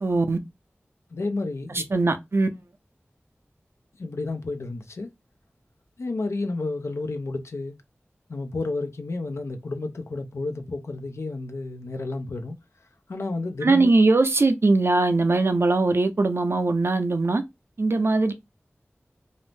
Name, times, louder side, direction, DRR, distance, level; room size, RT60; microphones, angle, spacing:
voice 1, 0.0-0.4 1.7-2.5 13.6-17.4 17.8-18.3, right 3 dB, 60° right, 0.4 m, -21 dB
voice 2, 1.1-1.9 4.0-5.1 6.0-7.8 8.3-12.6 13.1-13.9, left 3 dB, 90° left, 0.4 m, -31 dB
2.5 x 2.0 x 3.1 m
wide cardioid pair, 40°, 5 cm